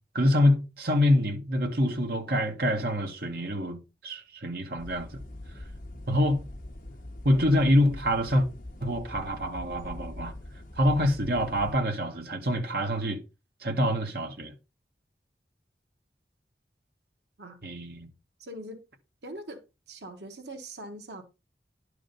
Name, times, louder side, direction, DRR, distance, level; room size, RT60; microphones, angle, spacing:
voice 1, 0.1-5.1 6.1-6.4 7.2-8.4 8.8-10.3 10.8-13.2 13.6-14.5 17.6-18.1, left 1 dB, 60° right, 1.7 m, -26 dB
sound 1, 4.8-11.8, left 1 dB, 50° left, 1.7 m, -43 dB
voice 2, 18.4-18.8 19.2-21.2, right 1 dB, 80° right, 1.6 m, -42 dB
11.0 x 5.0 x 5.3 m
head